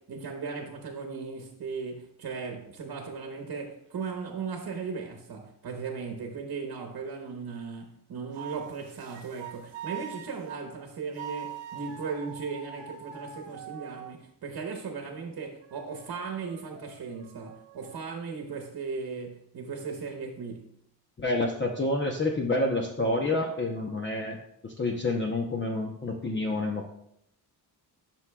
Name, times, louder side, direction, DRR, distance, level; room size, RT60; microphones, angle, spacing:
voice 1, 0.0-20.8, right 5 dB, 60° right, 3 dB, 1.0 m, -37 dB
sound 1, 3.1-3.7 8.3-10.7 11.1-14.2 14.8-18.1, right 8 dB, 85° right, 1.0 m, -44 dB
voice 2, 21.2-24.4 24.6-26.9, left 2 dB, 30° left, 2 dB, 0.7 m, -28 dB
11.5 x 6.1 x 2.3 m, 0.74 s
wide cardioid pair, 125°, 42 cm